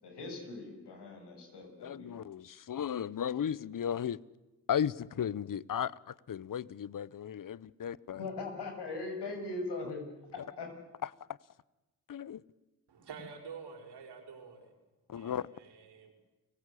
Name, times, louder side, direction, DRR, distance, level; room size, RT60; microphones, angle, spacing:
voice 1, 0.0-2.1 8.2-10.0 10.3-10.8, left 3 dB, 80° left, 6.8 m, -40 dB
voice 2, 1.8-4.2 4.7-8.3 11.0-11.1 12.1-12.4 15.1-15.4, left 9 dB, 55° left, 0.9 m, -35 dB
voice 3, 12.9-14.7 15.1-16.1, right 5 dB, 80° right, 5.2 m, -48 dB
30.0 x 18.0 x 8.5 m
supercardioid pair, 45°, 40 cm